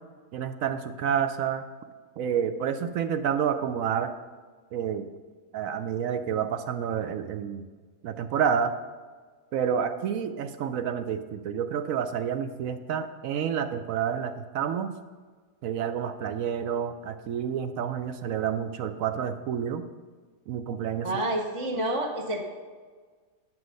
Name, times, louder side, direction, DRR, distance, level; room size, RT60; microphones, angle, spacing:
voice 1, 0.3-1.6 2.2-4.1 4.7-5.1 5.5-7.7 8.0-8.7 9.5-14.9 15.6-19.8 20.5-21.1, right 8 dB, 70° right, 10 dB, 0.8 m, -29 dB
voice 2, 21.0-22.4, right 1 dB, 30° right, 1 dB, 0.7 m, -29 dB
9.1 x 6.1 x 6.4 m, 1.5 s
omnidirectional pair, 1.7 m